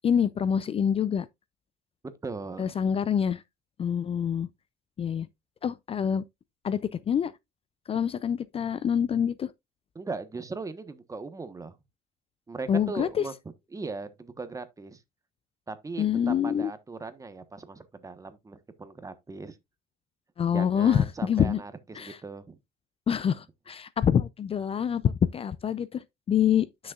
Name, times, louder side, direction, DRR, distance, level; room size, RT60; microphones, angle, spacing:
voice 1, 0.0-1.3 2.6-3.4 3.8-4.5 5.0-5.3 5.6-6.2 6.6-6.8 7.1-7.3 7.9-9.5 12.7-13.2 16.0-16.7 20.4-21.6 22.0-22.2 23.1-26.9, left 8 dB, 35° left, 0.4 m, -26 dB
voice 2, 2.2-2.7 9.9-11.8 12.5-13.3 13.7-15.0 15.7-19.6 20.5-22.6, right 3 dB, 20° right, 1.1 m, -38 dB
10.5 x 6.3 x 2.4 m
cardioid pair, 110°, 17 cm